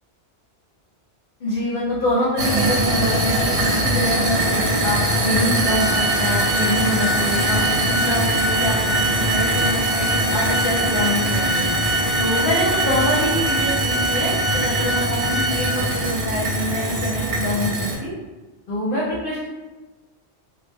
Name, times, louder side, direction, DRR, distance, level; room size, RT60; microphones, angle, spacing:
voice 1, 1.4-5.0 5.2-11.7 12.2-18.1 18.7-19.5, equal, 60° left, -9 dB, 0.8 m, -25 dB
sound 1, 2.4-17.9, right 1 dB, 75° right, 0.9 m, -22 dB
Organ, 5.6-16.2, right 1 dB, 20° right, 0.4 m, -25 dB
2.1 x 2.1 x 3.3 m, 1.2 s
omnidirectional pair, 1.1 m